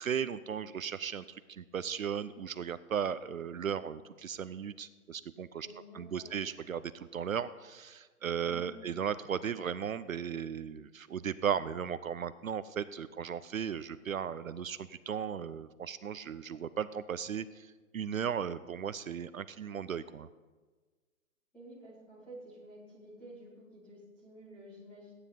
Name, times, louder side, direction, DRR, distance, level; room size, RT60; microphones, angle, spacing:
voice 1, 0.0-5.7 5.9-20.3, right 8 dB, 65° right, 14 dB, 0.6 m, -36 dB
voice 2, 5.5-6.4 8.4-9.0 21.5-25.1, right 1 dB, ahead, -8 dB, 1.3 m, -51 dB
15.0 x 9.8 x 5.2 m, 1.3 s
hypercardioid pair, 175°, 43 cm